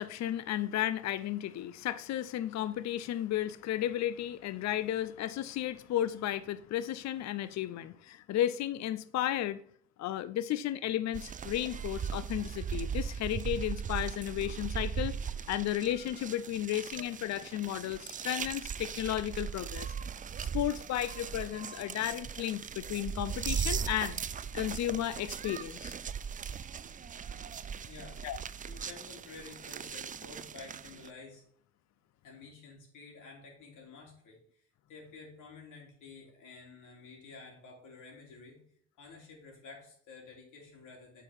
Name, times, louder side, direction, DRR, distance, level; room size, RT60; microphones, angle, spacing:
voice 1, 0.0-9.6 10.0-15.1 15.5-19.9 20.4-24.2 24.5-26.0 28.2-28.4, left 12 dB, 65° left, 0.5 m, -33 dB
sound 1, 11.1-31.1, right 7 dB, 25° right, 0.4 m, -38 dB
voice 2, 27.8-28.2 28.7-31.4 32.2-34.6 34.9-38.6 39.0-41.2, left 4 dB, 85° left, 3.3 m, -51 dB
8.5 x 5.1 x 5.7 m
cardioid pair, 90°, 30 cm